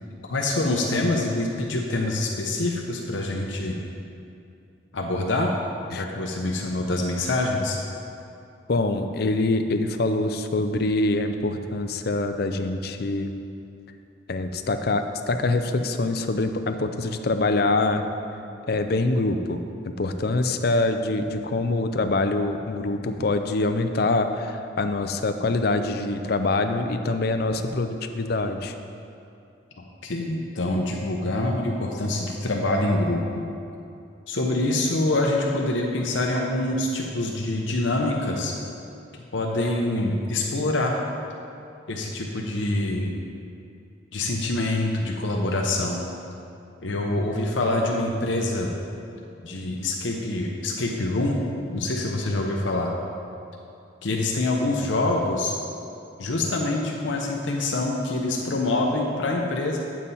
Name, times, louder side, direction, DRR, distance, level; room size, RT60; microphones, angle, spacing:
voice 1, 0.2-3.8 4.9-5.5 5.9-7.8 29.8-33.4 34.3-38.5 39.3-40.9 41.9-43.2 44.1-46.0 46.8-48.7 49.4-51.4 51.7-52.9 54.0-55.5 56.2-59.8, left 2 dB, 75° left, 0 dB, 0.8 m, -25 dB
voice 2, 8.7-13.3 14.3-18.1 18.7-28.8, left 2 dB, 55° left, 7 dB, 0.5 m, -25 dB
8.8 x 7.4 x 4.2 m, 2.6 s
head